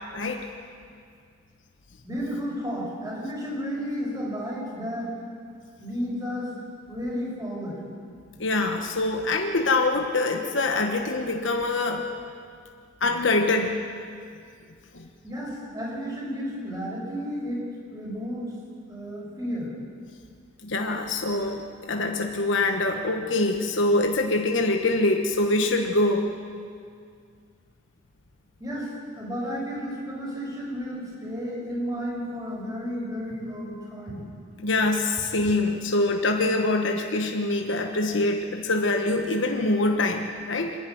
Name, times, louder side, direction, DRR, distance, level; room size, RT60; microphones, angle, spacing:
voice 1, 0.1-0.4 8.4-12.0 13.0-13.8 14.9-15.1 20.6-26.3 34.6-40.8, left 2 dB, 75° left, 3 dB, 1.3 m, -24 dB
voice 2, 2.0-5.1 5.8-6.5 6.8-7.8 15.2-17.6 17.9-18.5 18.9-19.7 28.6-34.3, equal, 20° right, -3 dB, 5.8 m, -32 dB
27.0 x 11.5 x 9.4 m, 2.2 s
head